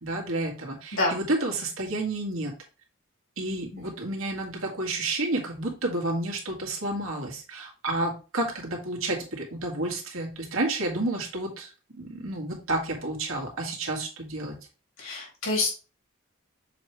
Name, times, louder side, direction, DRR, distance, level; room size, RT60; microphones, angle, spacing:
voice 1, 0.0-2.5 3.4-14.6, right 2 dB, 85° right, 0 dB, 1.9 m, -30 dB
voice 2, 15.0-15.7, left 2 dB, 85° left, -3 dB, 3.6 m, -27 dB
6.8 x 3.1 x 4.7 m, 0.33 s
head